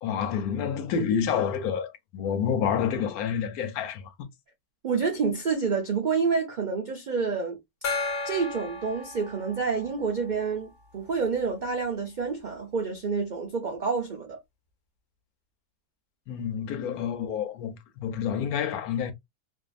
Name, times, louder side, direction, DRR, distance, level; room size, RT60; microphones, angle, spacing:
voice 1, 0.0-4.3 16.3-19.1, left 7 dB, 85° left, 1.1 m, -28 dB
voice 2, 4.8-7.6 8.2-14.4, right 5 dB, 80° right, 0.4 m, -28 dB
Gong, 7.8-11.1, left 3 dB, 45° left, 0.7 m, -35 dB
2.6 x 2.5 x 2.4 m
omnidirectional pair, 1.5 m